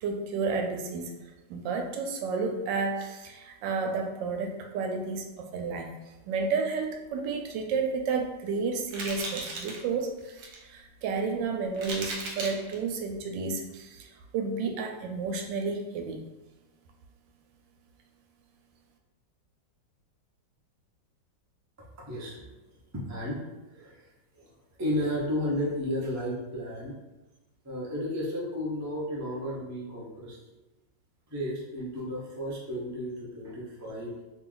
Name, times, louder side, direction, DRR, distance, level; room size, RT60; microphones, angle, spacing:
voice 1, 0.0-1.1 1.5-5.9 6.3-16.3, right 4 dB, 80° right, 4 dB, 1.2 m, -31 dB
sound 1, 8.0-8.2 8.9-9.8 10.2-10.6 11.2-11.3 11.7-12.8, right 2 dB, 60° right, 1.2 m, -36 dB
voice 2, 22.0-23.4 23.7-24.0 24.3-24.5 24.8-26.9 27.6-30.4 31.3-34.2, equal, 25° right, -6 dB, 0.3 m, -33 dB
3.0 x 3.0 x 3.8 m, 1.1 s
omnidirectional pair, 2.0 m